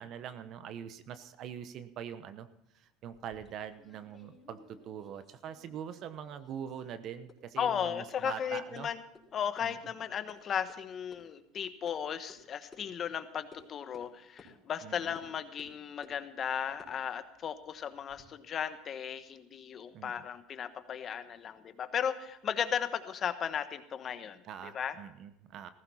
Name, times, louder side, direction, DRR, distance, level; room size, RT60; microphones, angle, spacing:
voice 1, 0.0-2.5 2.7-8.9 9.6-9.8 14.8-15.2 19.9-20.3 24.4-25.7, right 9 dB, 50° right, 12 dB, 0.9 m, -43 dB
sound 1, 3.1-5.9 6.2-6.9 7.3-7.4 7.7-7.8 8.1-8.2 8.8-8.9 9.1-9.2 9.6-9.7 10.0-10.4 10.7-10.8 11.1-11.2 11.9-12.0 12.3-12.4 12.7-12.8 13.5-13.6 13.9-14.1 14.4-14.5 15.1-15.3 15.6-16.2 16.7-18.2, left 3 dB, 20° left, 4.9 m, -57 dB
voice 2, 7.6-9.0 9.3-25.0, left 8 dB, 40° left, 11 dB, 1.2 m, -36 dB
15.5 x 14.5 x 4.3 m, 0.80 s
supercardioid pair, 100°, 0 cm